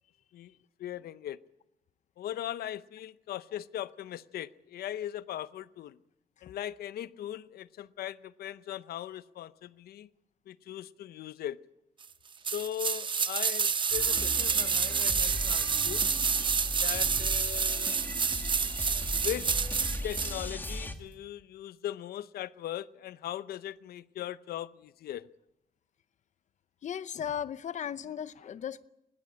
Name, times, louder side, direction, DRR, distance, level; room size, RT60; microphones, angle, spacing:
voice 1, 0.8-1.4 2.2-6.0 6.4-10.1 10.5-11.6 12.5-16.0 16.8-18.0 19.2-19.6 20.0-25.3, left 12 dB, 90° left, 0.7 m, -39 dB
sound 1, 12.4-20.4 20.7-20.8, right 6 dB, 30° right, 0.7 m, -29 dB
sound 2, 13.9-20.9, left 1 dB, 15° left, 1.8 m, -38 dB
voice 2, 26.8-28.9, left 9 dB, 50° left, 0.7 m, -37 dB
21.0 x 18.0 x 8.6 m
cardioid pair, 150°, 16 cm